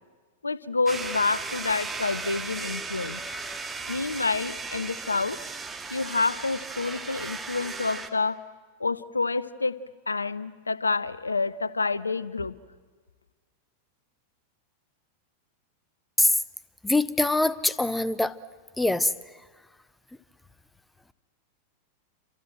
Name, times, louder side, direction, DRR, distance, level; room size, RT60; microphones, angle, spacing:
voice 1, 0.4-3.2 3.9-5.4 5.9-8.4 8.8-9.8 10.1-12.5, left 3 dB, 80° left, 19 dB, 0.8 m, -28 dB
sound 1, 0.9-8.1, right 4 dB, 15° right, 2.0 m, -36 dB
voice 2, 16.8-18.3 18.8-19.1, left 2 dB, 5° left, 17 dB, 0.9 m, -23 dB
28.5 x 26.5 x 7.7 m, 1.4 s
figure-of-eight pair, 90°, 0 cm